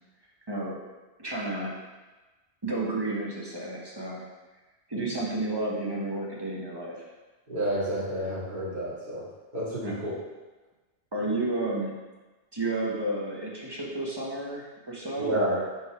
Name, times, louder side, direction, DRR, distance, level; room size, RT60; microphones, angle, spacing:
voice 1, 1.2-1.8 2.6-4.3 4.9-7.0 9.8-10.0 11.1-11.9 12.5-15.6, right 2 dB, 25° right, -4 dB, 1.1 m, -31 dB
voice 2, 7.5-9.2 9.5-10.1 15.2-15.6, right 1 dB, 45° right, -9 dB, 2.4 m, -30 dB
5.5 x 4.0 x 4.7 m, 1.2 s
omnidirectional pair, 1.1 m